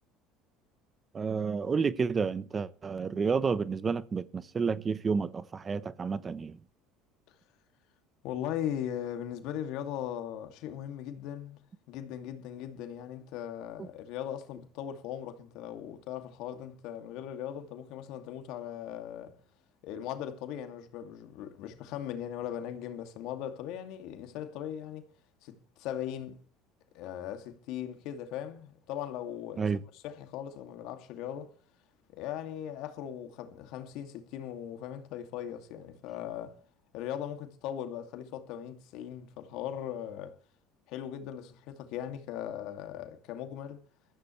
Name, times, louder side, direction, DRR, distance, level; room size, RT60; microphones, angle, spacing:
voice 1, 1.1-6.6 13.8-13.9 29.6-29.8, right 5 dB, 30° right, 0.9 m, -30 dB
voice 2, 8.2-11.6 11.9-19.4 19.8-25.1 25.4-26.4 26.9-29.7 30.0-31.5 32.1-36.6 36.9-40.4 40.9-43.8, left 10 dB, 70° left, 2.4 m, -39 dB
22.0 x 14.0 x 3.2 m
supercardioid pair, 100°, 0 cm